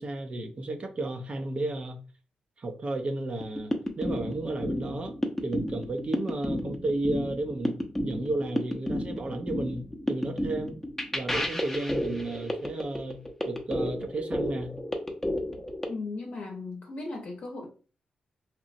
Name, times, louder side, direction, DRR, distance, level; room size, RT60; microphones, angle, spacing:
voice 1, 0.0-2.0 2.6-5.1 5.4-10.8 11.1-14.8, right 2 dB, 45° right, 0.5 m, -33 dB
sound 1, 3.4-15.9, left 1 dB, 10° left, 0.6 m, -32 dB
voice 2, 15.9-17.7, left 3 dB, 60° left, 0.7 m, -37 dB
2.9 x 2.0 x 2.5 m
cardioid pair, 65°, 3 cm